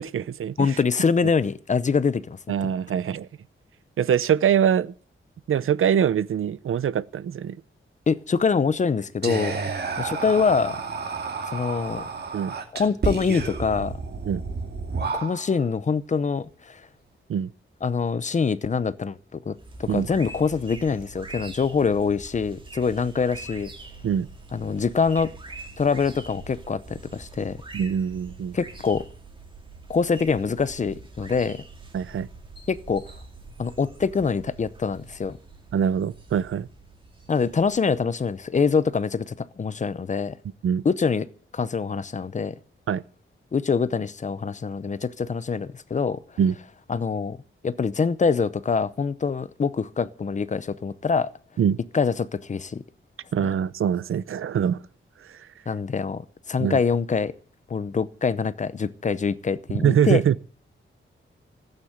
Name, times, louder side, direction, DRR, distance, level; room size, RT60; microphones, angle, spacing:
voice 1, 0.0-0.8 2.5-3.3 4.0-4.9 5.5-7.6 12.3-12.5 14.3-14.4 17.3-17.5 19.9-20.1 24.0-24.3 27.7-28.6 31.9-32.3 35.7-36.7 40.6-40.8 42.9-43.0 46.4-46.5 51.6-51.8 53.3-54.8 55.2-55.5 56.6-56.8 59.7-60.4, right 8 dB, 80° right, 0.7 m, -23 dB
voice 2, 0.6-2.4 8.1-9.6 10.0-10.8 11.5-12.0 12.7-14.0 15.1-16.8 17.8-19.5 19.8-23.7 24.5-25.3 25.8-27.6 28.5-29.0 29.9-31.6 32.7-33.0 33.6-35.4 37.3-40.4 40.8-41.3 41.5-42.5 43.5-46.2 46.9-47.4 47.6-51.3 51.9-52.8 55.7-57.3 57.7-60.2, left 5 dB, 35° left, 0.7 m, -24 dB
Whispering, 9.2-15.7, right 4 dB, 50° right, 2.5 m, -31 dB
sound 1, 19.5-39.0, right 3 dB, 25° right, 2.4 m, -44 dB
15.5 x 9.0 x 7.9 m
wide cardioid pair, 180°, 21 cm